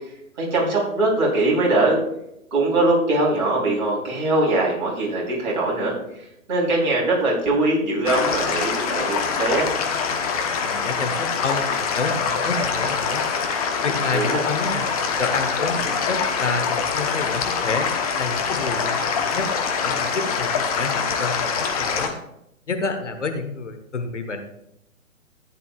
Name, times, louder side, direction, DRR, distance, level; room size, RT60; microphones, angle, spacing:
voice 1, 0.4-2.0 2.5-9.7 14.1-14.4, right 2 dB, 35° right, -4 dB, 3.7 m, -22 dB
sound 1, 8.1-22.1, left 5 dB, 25° left, 1.0 m, -24 dB
voice 2, 10.6-13.3 13.8-14.9 15.2-17.9 18.2-19.5 19.8-22.2 22.7-24.4, left 4 dB, 55° left, 6 dB, 1.4 m, -29 dB
14.5 x 9.7 x 2.4 m, 0.80 s
figure-of-eight pair, 130°, 42 cm